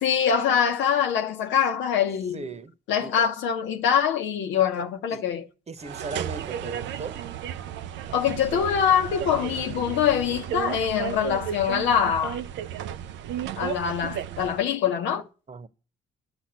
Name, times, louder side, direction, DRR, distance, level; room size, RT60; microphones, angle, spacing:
voice 1, 0.0-2.5 2.9-5.5 8.1-12.4 13.6-15.2, left 8 dB, 85° left, 1.0 m, -24 dB
voice 2, 2.3-2.7 3.0-3.2 5.1-5.2 5.7-7.2 15.5-15.7, right 4 dB, 35° right, 1.0 m, -37 dB
sound 1, 5.8-14.6, right 10 dB, 85° right, 0.5 m, -34 dB
9.8 x 6.2 x 7.9 m
supercardioid pair, 70°, 18 cm